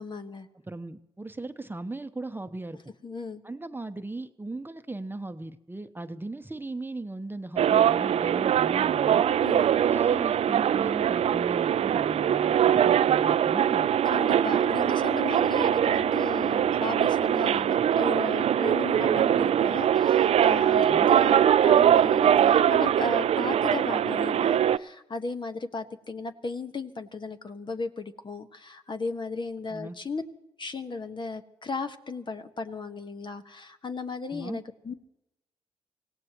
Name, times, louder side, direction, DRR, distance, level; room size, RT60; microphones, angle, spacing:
voice 1, 0.0-0.5 3.0-3.4 9.4-9.7 14.0-30.2 30.6-34.9, left 3 dB, 45° left, 7 dB, 1.4 m, -35 dB
voice 2, 0.7-2.8 3.4-9.2 9.8-13.9 20.8-21.1 29.7-30.0 34.3-34.6, right 2 dB, 20° right, 8 dB, 1.0 m, -38 dB
sound 1, 7.6-24.8, right 9 dB, 65° right, 0.5 m, -22 dB
24.5 x 17.0 x 3.1 m, 0.90 s
supercardioid pair, 45°, 12 cm